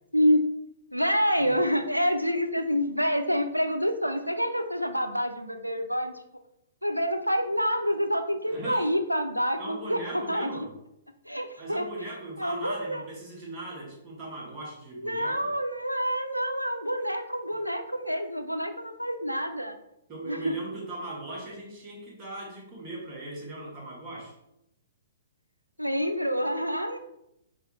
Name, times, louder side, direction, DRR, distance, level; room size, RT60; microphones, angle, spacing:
voice 1, 0.9-6.1 6.8-10.7 11.3-12.1 12.4-13.0 15.0-19.8 20.2-20.5 25.8-27.0, equal, 90° right, 8 dB, 0.4 m, -27 dB
voice 2, 8.4-9.0 9.6-10.7 11.6-15.5 20.1-24.3, right 2 dB, 30° right, -3 dB, 1.3 m, -39 dB
5.6 x 2.4 x 3.0 m, 0.83 s
figure-of-eight pair, 115°, 0 cm